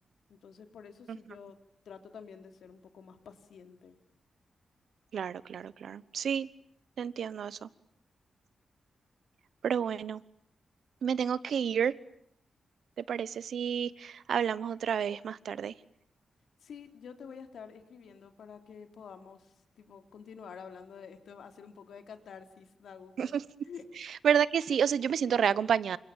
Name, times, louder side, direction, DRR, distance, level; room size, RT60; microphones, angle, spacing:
voice 1, 0.3-1.6 1.9-4.0 16.6-23.4 23.7-23.9, left 6 dB, 80° left, 7 dB, 3.4 m, -49 dB
voice 2, 5.1-6.5 7.0-7.7 9.6-10.2 11.0-11.9 13.0-15.7 23.2-23.4 24.2-26.0, right 8 dB, 75° right, 18 dB, 1.1 m, -30 dB
29.5 x 26.5 x 7.4 m, 0.70 s
wide cardioid pair, 175°, 0 cm